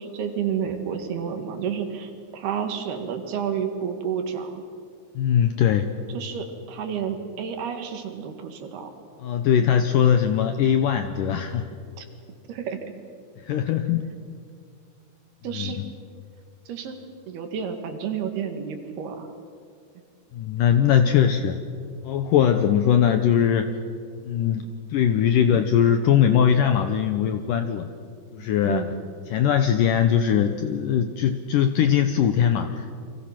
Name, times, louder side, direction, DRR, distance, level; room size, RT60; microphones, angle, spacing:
voice 1, 0.0-4.6 6.1-8.9 12.0-12.1 12.5-12.8 15.4-15.8 16.7-17.0 17.3-19.3 28.7-29.0, right 7 dB, 70° right, 5 dB, 3.8 m, -30 dB
voice 2, 5.2-5.9 9.2-11.7 13.4-14.1 15.5-15.9 20.3-21.6 22.0-23.7 24.2-24.7 24.9-27.9 28.3-28.9 29.3-32.9, left 9 dB, 75° left, 8 dB, 2.1 m, -21 dB
29.5 x 24.5 x 5.9 m, 2.3 s
omnidirectional pair, 4.8 m